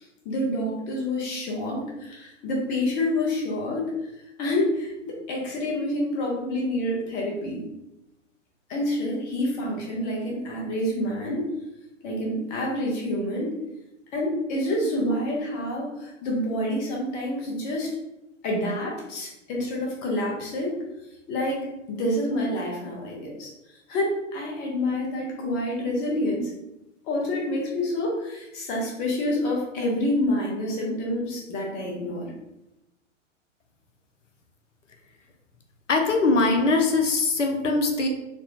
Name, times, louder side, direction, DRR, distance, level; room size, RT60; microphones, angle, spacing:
voice 1, 0.2-3.8 4.4-7.6 8.7-11.5 12.0-13.5 14.1-17.9 18.4-20.8 21.3-21.6 21.9-23.5 23.9-26.5 27.1-32.3, left 1 dB, 20° left, -2 dB, 0.7 m, -28 dB
voice 2, 35.9-38.1, left 3 dB, 70° left, 4 dB, 0.6 m, -21 dB
4.1 x 2.2 x 2.8 m, 0.91 s
figure-of-eight pair, 110°, 38 cm